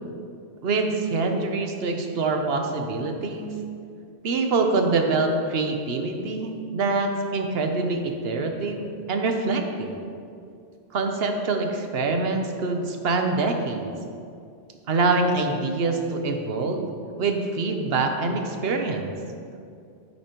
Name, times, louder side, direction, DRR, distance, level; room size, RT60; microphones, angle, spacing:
voice 1, 0.6-3.5 4.2-9.9 10.9-13.9 14.9-16.9 17.2-19.1, right 3 dB, 65° right, 4 dB, 1.0 m, -25 dB
10.0 x 8.4 x 3.0 m, 2.4 s
omnidirectional pair, 1.2 m